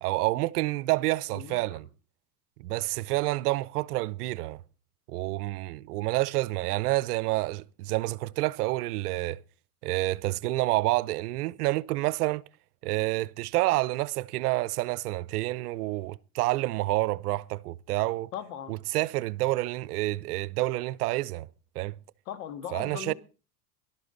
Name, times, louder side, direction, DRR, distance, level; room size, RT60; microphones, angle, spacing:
voice 1, 0.0-1.9 2.6-4.6 5.1-9.4 9.8-12.4 12.8-18.3 18.7-21.5 21.8-21.9 22.7-23.1, right 18 dB, 80° right, 0.7 m, -28 dB
voice 2, 1.3-1.8 18.3-18.8 22.3-23.1, left 10 dB, 75° left, 2.0 m, -39 dB
18.0 x 12.0 x 3.9 m
supercardioid pair, 110°, 45 cm